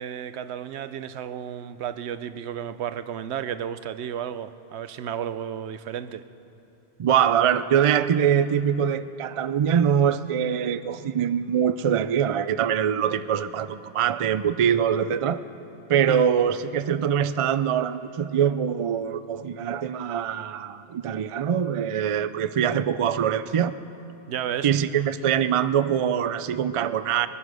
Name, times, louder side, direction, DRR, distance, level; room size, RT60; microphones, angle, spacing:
voice 1, 0.0-6.2 16.1-16.3 24.3-24.7, right 9 dB, 85° right, 13 dB, 0.9 m, -33 dB
voice 2, 7.0-15.4 15.9-23.7 24.6-27.3, right 8 dB, 60° right, 13 dB, 0.3 m, -23 dB
22.5 x 9.7 x 6.2 m, 2.8 s
omnidirectional pair, 1.1 m